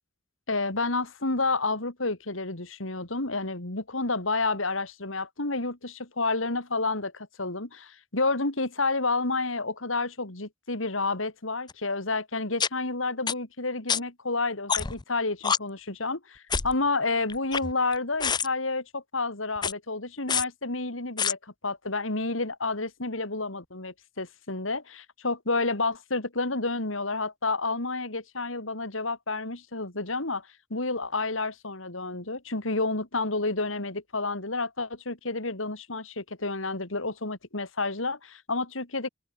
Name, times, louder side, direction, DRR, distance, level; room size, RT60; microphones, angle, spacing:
voice 1, 0.5-39.1, left 3 dB, 85° left, 3.6 m, -30 dB
sound 1, 11.7-11.8 12.6-12.7 13.3-13.4 13.9-14.0 14.7-15.0 15.4-15.6 16.5-16.7 17.3-17.9 18.2-18.5 19.6-19.7 20.3-20.4 21.2-21.3, left 6 dB, 20° left, 0.5 m, -26 dB
open air
head